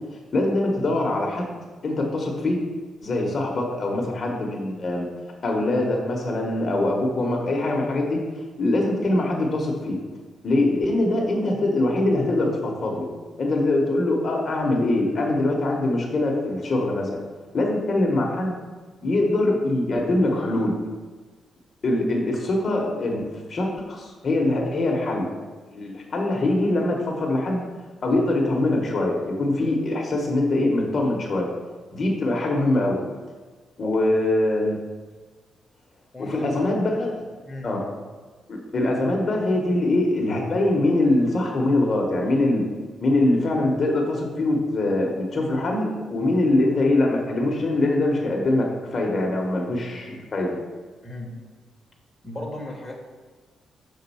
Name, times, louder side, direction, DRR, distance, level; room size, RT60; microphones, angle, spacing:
voice 1, 0.3-1.4 1.8-2.6 3.0-5.1 5.4-8.2 8.6-10.0 10.4-13.1 13.4-17.2 17.5-18.6 19.0-20.7 21.8-23.2 23.5-25.2 25.7-27.6 28.0-31.5 31.9-33.0 33.8-34.7 36.2-37.2 37.6-37.8 38.5-42.6 43.0-50.6, left 2 dB, 30° left, -1 dB, 0.9 m, -23 dB
voice 2, 36.1-36.7 37.4-37.7 51.0-51.4 52.2-53.0, left 1 dB, 5° left, -3 dB, 1.0 m, -35 dB
6.1 x 3.8 x 5.5 m, 1.4 s
wide cardioid pair, 175°, 0 cm